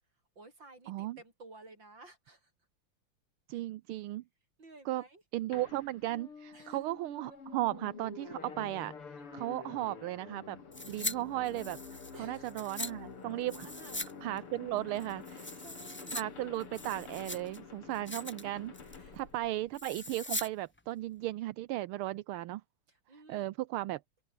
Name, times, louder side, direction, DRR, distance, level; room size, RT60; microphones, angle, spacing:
voice 1, 0.4-2.5 3.5-3.6 4.6-5.2 6.5-6.8 9.2-9.5 12.1-12.5 13.6-14.0 15.3-16.2 19.0-19.2 22.9-23.5, right 2 dB, 55° right, 7.2 m, -55 dB
voice 2, 0.9-1.2 3.5-4.2 4.8-5.0 5.3-10.6 10.9-13.7 14.2-15.6 16.1-22.6 23.3-24.0, right 16 dB, 80° right, 1.6 m, -36 dB
sound 1, 5.5-20.3, left 5 dB, 80° left, 4.1 m, -49 dB
sound 2, 10.7-11.1 11.4-12.9 13.5-14.1 14.4-14.5 15.0-16.2 16.6-17.6 17.9-18.4 18.7-19.1 19.7-20.5 20.8-20.9, left 1 dB, 15° left, 0.4 m, -40 dB
omnidirectional pair, 2.4 m